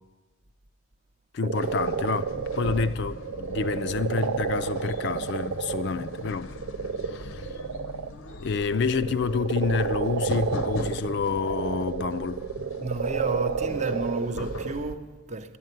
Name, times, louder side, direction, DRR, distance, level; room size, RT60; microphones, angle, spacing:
voice 1, 1.3-6.6 7.1-7.5 8.4-12.5, left 5 dB, 55° left, 0.4 m, -28 dB
sound 1, 1.4-8.1 8.5-14.8, right 6 dB, 80° right, 0.4 m, -31 dB
sound 2, 1.5-14.9, left 2 dB, 75° left, 0.8 m, -39 dB
voice 2, 12.8-15.6, right 2 dB, 35° right, 0.5 m, -32 dB
11.0 x 9.1 x 9.2 m
head